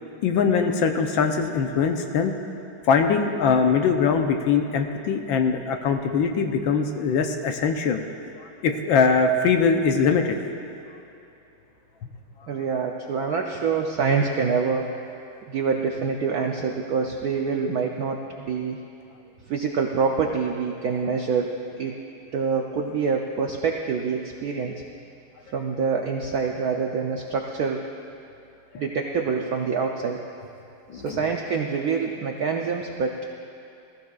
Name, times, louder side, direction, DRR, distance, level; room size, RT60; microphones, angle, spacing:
voice 1, 0.2-2.3 2.9-8.0 8.4-10.4 30.9-31.2, left 5 dB, 75° left, 5 dB, 1.4 m, -22 dB
voice 2, 12.5-14.8 15.5-18.8 19.5-21.9 22.3-24.7 25.5-27.8 28.8-30.2 30.9-33.1, right 5 dB, 75° right, 2 dB, 0.8 m, -26 dB
20.0 x 14.5 x 2.4 m, 2.7 s
omnidirectional pair, 2.4 m